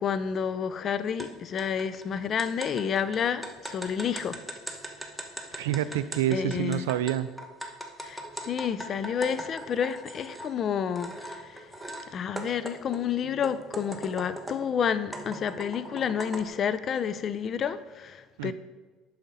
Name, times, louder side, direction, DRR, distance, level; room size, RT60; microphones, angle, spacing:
voice 1, 0.0-4.4 6.3-6.8 8.0-11.7 12.1-18.5, left 7 dB, 45° left, 0.5 m, -30 dB
sound 1, 1.2-1.3 1.6-10.5 11.0-12.1 12.4-14.7 15.1-16.5, right 1 dB, 5° right, 1.2 m, -39 dB
voice 2, 5.5-7.3 18.4-18.5, right 11 dB, 85° right, 0.3 m, -27 dB
8.3 x 6.5 x 4.0 m
hypercardioid pair, 75°, 0 cm